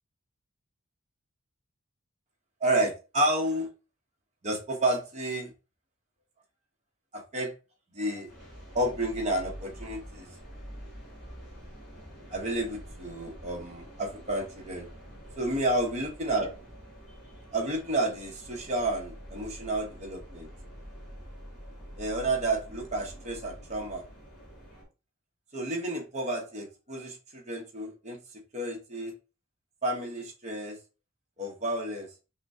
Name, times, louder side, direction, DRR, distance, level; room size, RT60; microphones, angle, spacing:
voice 1, 2.6-3.7 4.4-5.5 7.1-7.5 7.9-8.3 8.7-10.3 12.3-14.8 15.4-16.5 17.5-20.5 22.0-24.0 25.5-28.2 28.5-29.1 29.8-30.8 31.4-32.1, right 1 dB, 35° right, 1 dB, 1.0 m, -30 dB
sound 1, 8.3-24.8, equal, 5° left, 2.3 m, -47 dB
5.7 x 2.2 x 2.7 m, 0.31 s
head